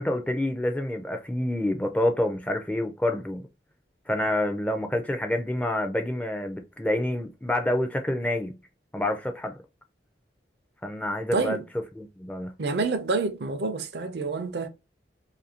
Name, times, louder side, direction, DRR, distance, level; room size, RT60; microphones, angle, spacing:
voice 1, 0.0-3.4 4.1-8.5 8.9-9.6 10.8-11.6 12.0-12.5, left 1 dB, 10° left, 0.3 m, -27 dB
voice 2, 11.3-11.7 12.6-14.7, right 3 dB, 65° right, 0.5 m, -28 dB
2.6 x 2.5 x 2.8 m
head